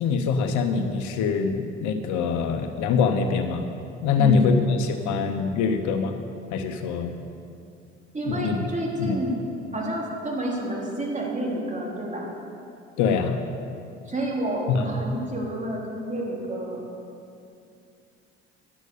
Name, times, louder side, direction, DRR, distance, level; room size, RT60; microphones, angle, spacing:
voice 1, 0.0-3.6 4.0-6.1 6.5-7.1 8.3-8.6 9.0-9.2 13.0-13.4 14.7-14.8, left 5 dB, 65° left, 7 dB, 1.0 m, -24 dB
voice 2, 4.2-4.5 8.1-9.4 9.7-12.3 14.1-16.8, right 1 dB, 25° right, -2 dB, 3.5 m, -29 dB
11.5 x 8.2 x 6.9 m, 2.5 s
hypercardioid pair, 60°, 31 cm